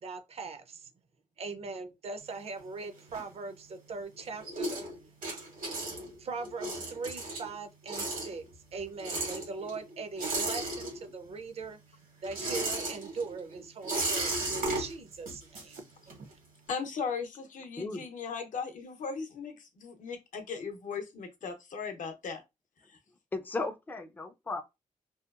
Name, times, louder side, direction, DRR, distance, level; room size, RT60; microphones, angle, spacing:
voice 1, 0.0-0.9 1.4-4.9 6.2-8.4 8.7-11.8 12.2-16.3, right 4 dB, 50° right, 0.4 m, -40 dB
sound 1, 2.2-3.8 4.1-11.4 11.6-16.3, right 2 dB, 85° right, 1.3 m, -36 dB
voice 2, 16.7-22.4 22.9-23.0, left 5 dB, 70° left, 0.6 m, -38 dB
voice 3, 23.3-24.6, left 3 dB, 15° left, 0.3 m, -35 dB
2.7 x 2.2 x 2.3 m
wide cardioid pair, 150°, 14 cm